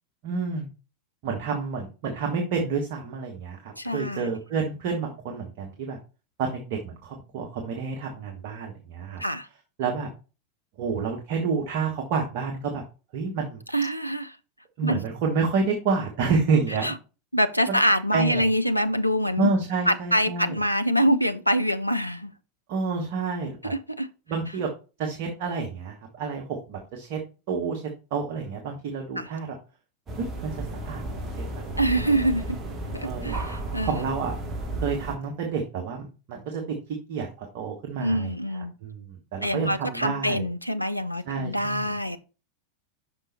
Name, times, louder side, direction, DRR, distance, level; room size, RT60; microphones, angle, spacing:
voice 1, 0.2-0.7 1.2-6.0 6.4-9.2 9.8-10.1 10.8-12.8 13.1-13.6 14.8-16.9 17.7-17.8 18.1-18.4 19.4-20.5 22.7-23.7 24.3-24.7 25.0-27.2 27.5-27.8 28.1-29.5 30.2-30.5 30.8-31.3 31.7-32.2 33.0-33.5 33.8-34.4 34.8-36.8 37.1-37.3 37.5-40.4 41.3-41.9, right 5 dB, 45° right, 1.4 m, -29 dB
voice 2, 3.8-4.3 9.2-9.5 13.7-14.3 14.8-15.0 16.8-16.9 17.3-19.5 19.9-22.3 23.6-24.1 29.2-29.3 31.8-32.6 32.9-34.1 38.0-38.7 39.4-42.2, equal, 90° left, 0.5 m, -25 dB
sound 1, 30.1-35.2, right 2 dB, 20° right, 1.9 m, -33 dB
6.1 x 5.2 x 4.2 m
figure-of-eight pair, 90°, 0 cm